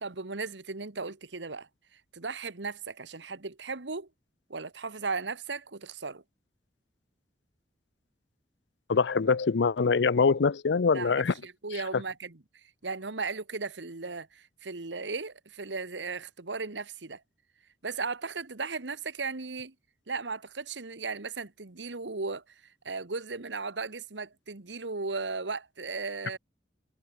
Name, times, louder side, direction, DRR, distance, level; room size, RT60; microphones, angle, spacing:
voice 1, 0.0-1.7 2.1-4.1 4.5-6.2 10.9-11.1 11.4-12.4 12.8-17.2 17.8-19.7 20.1-26.4, right 4 dB, 90° right, 1.5 m, -36 dB
voice 2, 8.9-11.3, left 5 dB, 80° left, 0.6 m, -24 dB
head